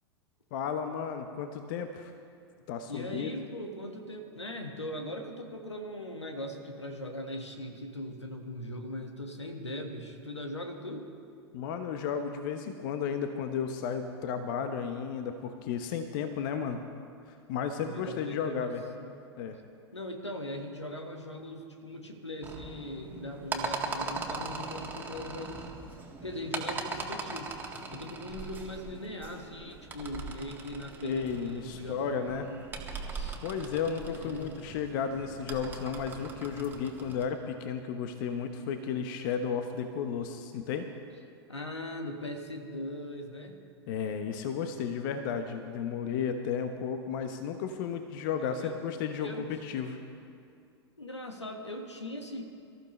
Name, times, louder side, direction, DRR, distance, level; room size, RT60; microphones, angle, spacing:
voice 1, 0.5-2.1 2.7-3.3 11.5-16.8 17.3-18.8 19.4-19.6 31.0-32.5 33.4-40.8 43.9-50.0, left 7 dB, 50° left, 7 dB, 1.0 m, -33 dB
voice 2, 2.9-11.1 17.8-19.1 19.9-25.7 26.2-32.6 33.1-33.4 34.0-34.6 41.5-43.6 48.4-48.8 49.2-49.5 50.0-50.1 51.0-52.4, left 1 dB, 85° left, 4 dB, 1.6 m, -40 dB
sound 1, 22.4-37.3, right 3 dB, 15° right, 1.8 m, -40 dB
24.0 x 14.0 x 3.2 m, 2.4 s
figure-of-eight pair, 95°, 14 cm